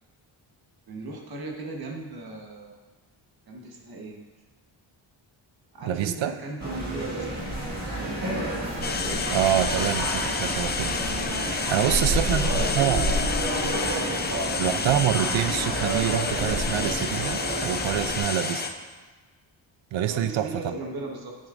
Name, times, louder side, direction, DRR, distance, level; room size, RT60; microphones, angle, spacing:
voice 1, 0.9-2.8 3.5-4.2 5.7-7.6 11.7-13.1 13.4-14.0 20.1-21.4, right 2 dB, 50° right, 1 dB, 1.4 m, -37 dB
voice 2, 5.8-6.3 9.3-11.0 11.7-13.1 14.6-18.6 19.9-20.7, right 11 dB, 80° right, 12 dB, 0.6 m, -26 dB
sound 1, 6.6-18.2, right 1 dB, 35° right, 2.0 m, -29 dB
sound 2, 8.8-18.7, left 4 dB, 25° left, 0.4 m, -30 dB
10.5 x 9.3 x 2.6 m, 1.3 s
wide cardioid pair, 170°, 46 cm